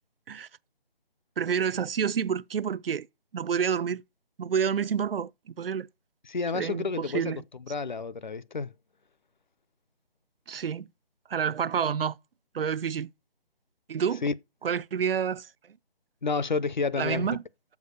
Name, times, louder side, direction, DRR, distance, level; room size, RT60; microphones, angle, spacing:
voice 1, 1.4-3.1 3.3-4.0 4.4-5.9 6.5-7.4 10.5-10.9 11.3-12.2 12.5-13.1 13.9-14.2 14.6-15.5 17.0-17.4, right 7 dB, 65° right, 0.4 m, -28 dB
voice 2, 6.3-7.3 7.7-8.7 14.2-14.3 16.2-17.3, left 4 dB, 50° left, 0.4 m, -30 dB
7.1 x 4.7 x 6.6 m
figure-of-eight pair, 170°, 31 cm